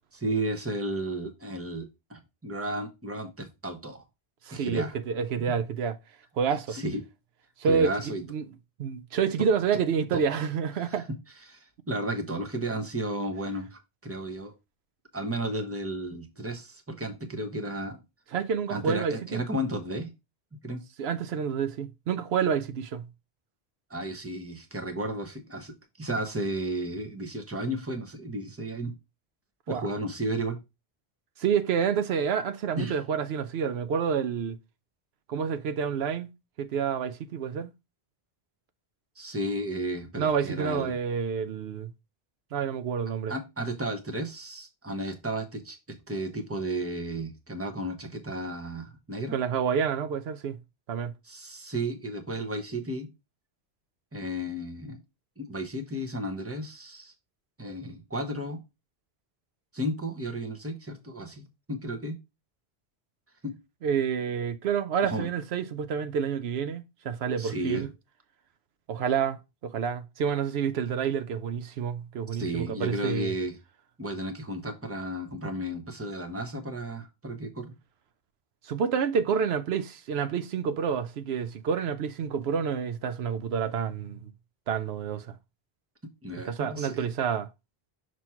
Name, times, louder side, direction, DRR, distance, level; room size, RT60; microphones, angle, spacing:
voice 1, 0.1-4.0 4.5-4.9 6.7-7.0 7.6-8.2 10.1-10.2 10.8-10.9 11.5-14.5 15.1-18.0 18.7-20.1 20.6-20.8 23.9-28.9 29.7-30.6 32.8-33.0 39.2-41.0 43.3-49.4 51.2-53.1 54.1-55.0 55.4-57.1 57.6-58.6 59.7-62.2 63.4-63.6 65.0-65.3 67.4-67.9 72.3-73.5 74.0-77.7 86.2-87.0, right 1 dB, 15° right, 1.0 m, -33 dB
voice 2, 4.4-6.0 6.4-6.8 7.6-7.9 8.3-8.4 8.8-11.1 18.3-19.4 21.0-23.1 29.7-29.9 31.4-34.6 35.3-36.3 36.6-37.7 40.2-41.9 42.5-43.3 49.3-50.6 50.9-51.1 63.8-67.9 68.9-73.3 78.6-84.3 84.7-85.4 86.3-87.5, right 7 dB, 80° right, 0.9 m, -28 dB
6.1 x 3.1 x 5.7 m
omnidirectional pair, 1.0 m